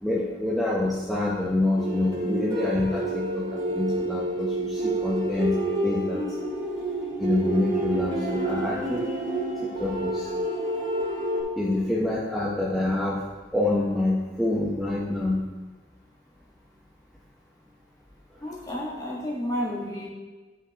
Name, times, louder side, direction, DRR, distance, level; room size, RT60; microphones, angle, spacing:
voice 1, 0.0-6.2 7.2-9.1 9.6-10.3 11.6-13.2 13.5-15.4, left 2 dB, ahead, -7 dB, 0.8 m, -26 dB
sound 1, 1.8-11.4, right 1 dB, 40° right, 2.0 m, -29 dB
voice 2, 18.4-20.1, equal, 20° left, -3 dB, 1.4 m, -31 dB
10.0 x 5.7 x 2.9 m, 1.3 s
head